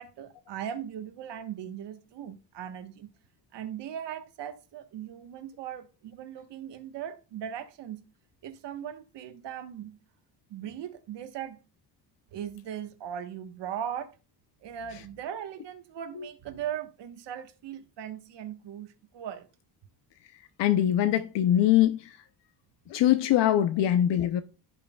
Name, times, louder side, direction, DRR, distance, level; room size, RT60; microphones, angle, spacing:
voice 1, 0.0-3.1 3.5-8.1 8.4-10.0 10.5-11.6 12.3-14.1 14.6-19.5, right 9 dB, 70° right, 1.2 m, -39 dB
voice 2, 20.6-22.2 22.9-24.4, left 11 dB, 70° left, 0.7 m, -23 dB
16.0 x 5.5 x 2.3 m
cardioid pair, 145°, 44 cm